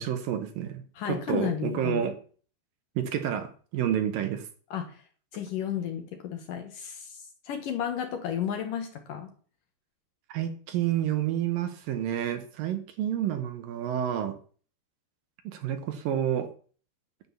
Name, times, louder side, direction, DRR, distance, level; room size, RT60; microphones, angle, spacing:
voice 1, 0.0-2.2 3.0-4.5 10.3-14.3 15.4-16.5, right 10 dB, 70° right, 8 dB, 2.4 m, -29 dB
voice 2, 1.0-2.1 4.7-5.0 5.3-7.2 7.4-9.3, left 9 dB, 65° left, 6 dB, 2.4 m, -33 dB
10.5 x 8.9 x 7.0 m, 0.43 s
omnidirectional pair, 5.0 m